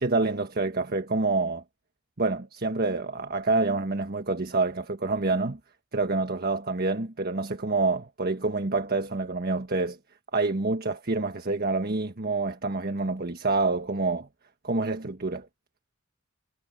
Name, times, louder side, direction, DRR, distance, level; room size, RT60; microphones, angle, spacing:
voice 1, 0.0-1.6 2.2-5.6 5.9-10.0 10.3-14.3 14.6-15.5, right 3 dB, 50° right, 1.5 m, -27 dB
head